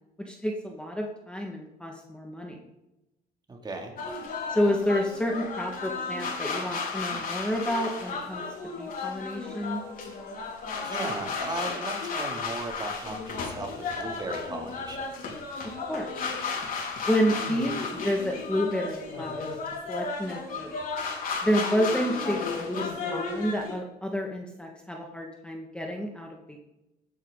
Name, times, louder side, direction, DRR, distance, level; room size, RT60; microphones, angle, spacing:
voice 1, 0.3-2.6 4.5-8.4 8.8-9.8 15.9-16.1 17.1-19.5 19.9-20.8 21.4-26.6, equal, 5° left, 0 dB, 1.8 m, -29 dB
voice 2, 3.5-3.9 10.8-15.1, right 2 dB, 25° right, 2 dB, 2.7 m, -36 dB
sound 1, 4.0-23.7, left 4 dB, 55° left, 4.3 m, -34 dB
17.0 x 9.5 x 4.0 m, 0.95 s
cardioid pair, 110°, 17 cm